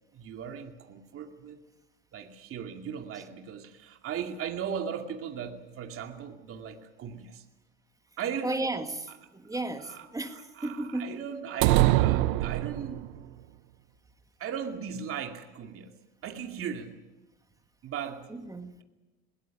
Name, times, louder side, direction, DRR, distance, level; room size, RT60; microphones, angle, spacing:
voice 1, 0.1-1.6 2.1-7.4 8.2-8.5 9.5-13.1 14.4-15.9 16.2-17.0 17.8-18.3, right 7 dB, 40° right, 2.4 m, -38 dB
voice 2, 8.4-11.2 18.3-18.7, right 2 dB, 10° right, 1.9 m, -34 dB
sound 1, 11.6-13.2, right 17 dB, 65° right, 1.0 m, -23 dB
20.5 x 18.5 x 8.9 m
hypercardioid pair, 90°, 35 cm